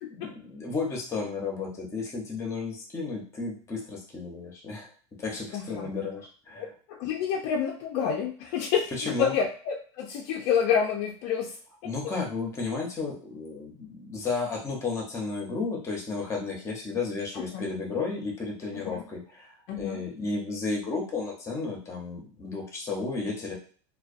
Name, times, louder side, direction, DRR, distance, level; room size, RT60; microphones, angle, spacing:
voice 1, 0.2-4.9 5.2-6.7 8.9-9.4 11.8-23.5, left 4 dB, 20° left, -1 dB, 0.7 m, -33 dB
voice 2, 5.5-5.9 6.6-11.5 17.4-17.6 18.8-19.0 19.7-20.0, left 7 dB, 45° left, 0 dB, 0.3 m, -28 dB
2.2 x 2.2 x 2.5 m, 0.43 s
supercardioid pair, 150°, 15 cm